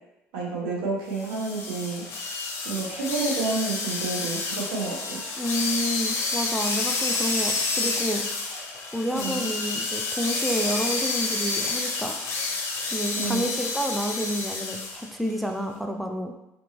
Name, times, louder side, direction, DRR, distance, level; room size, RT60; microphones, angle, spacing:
voice 1, 0.3-2.4 2.6-5.2 9.1-9.5 13.2-13.6, right 3 dB, 90° right, -4 dB, 0.8 m, -30 dB
sound 1, 1.2-15.1, left 3 dB, 55° left, 0.6 m, -29 dB
voice 2, 5.4-8.2 8.9-12.2 12.9-16.3, equal, ahead, 3 dB, 0.4 m, -29 dB
2.8 x 2.6 x 2.8 m, 0.91 s
supercardioid pair, 75°, 6 cm